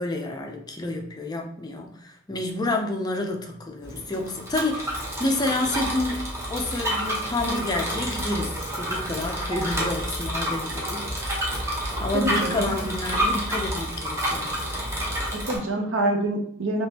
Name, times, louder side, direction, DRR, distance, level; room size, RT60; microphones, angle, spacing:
voice 1, 0.0-6.2 6.5-14.6, left 2 dB, 20° left, 2 dB, 0.4 m, -29 dB
Bicycle, 3.8-15.6, equal, 15° right, 0.8 m, -29 dB
voice 2, 12.1-12.7 15.3-16.9, right 1 dB, 80° right, 2 dB, 0.7 m, -26 dB
3.4 x 2.9 x 2.8 m, 0.66 s
head